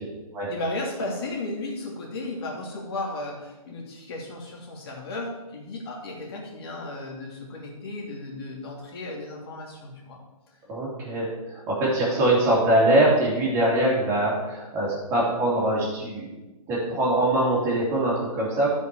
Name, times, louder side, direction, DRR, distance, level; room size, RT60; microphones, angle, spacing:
voice 1, 0.5-10.2, left 2 dB, 40° left, -1 dB, 2.7 m, -34 dB
voice 2, 10.7-16.3 16.7-18.7, right 1 dB, 15° right, -6 dB, 2.7 m, -23 dB
13.0 x 5.3 x 4.7 m, 1.1 s
hypercardioid pair, 170°, 19 cm